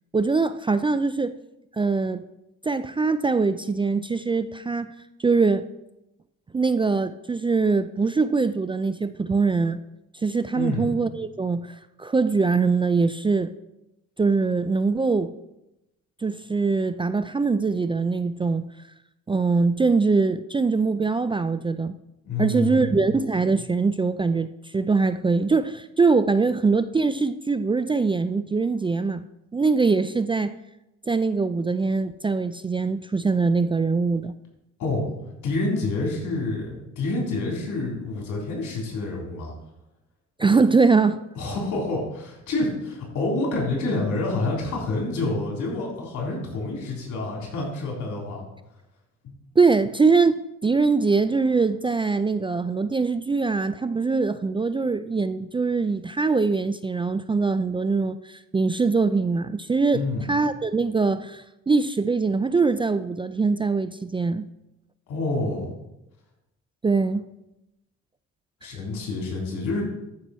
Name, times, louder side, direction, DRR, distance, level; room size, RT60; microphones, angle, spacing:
voice 1, 0.1-1.3 1.7-2.2 2.6-4.9 5.2-5.6 6.5-9.8 10.2-13.5 14.2-15.3 16.2-18.7 19.3-22.0 22.4-29.2 29.5-30.5 31.1-34.3 40.4-41.2 49.6-60.0 60.3-64.5 66.8-67.2, right 4 dB, 15° right, 12 dB, 0.3 m, -22 dB
voice 2, 10.5-10.9 22.2-23.0 34.8-35.1 35.4-39.5 41.4-48.5 49.2-49.4 59.9-60.3 65.1-65.7 68.6-69.8, left 2 dB, 75° left, -2 dB, 3.8 m, -28 dB
13.0 x 6.0 x 4.3 m, 0.91 s
cardioid pair, 90°, 30 cm